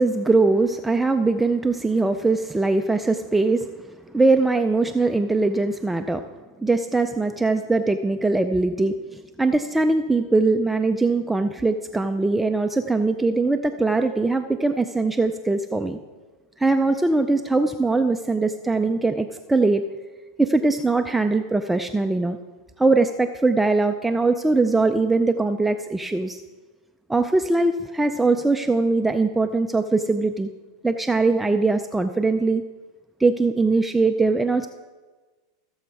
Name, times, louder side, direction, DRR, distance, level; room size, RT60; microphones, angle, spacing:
voice 1, 0.0-6.2 6.6-16.0 16.6-19.9 20.4-22.4 22.8-26.4 27.1-30.5 30.8-32.6 33.2-34.7, right 3 dB, 5° right, 6 dB, 0.4 m, -21 dB
15.0 x 7.0 x 4.7 m, 1.3 s
hypercardioid pair, 130°, 2 cm